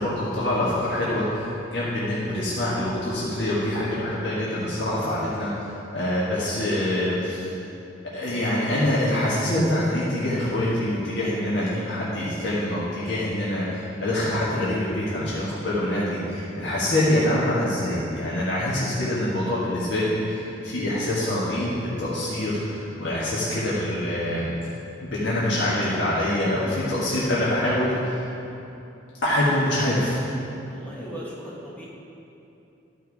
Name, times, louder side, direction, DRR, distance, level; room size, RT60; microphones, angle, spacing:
voice 1, 0.0-7.5 8.1-24.5 25.0-28.2 29.2-30.2, left 1 dB, 70° left, -8 dB, 1.6 m, -25 dB
voice 2, 30.5-31.9, equal, 10° left, -6 dB, 1.5 m, -38 dB
12.5 x 4.7 x 4.8 m, 2.8 s
head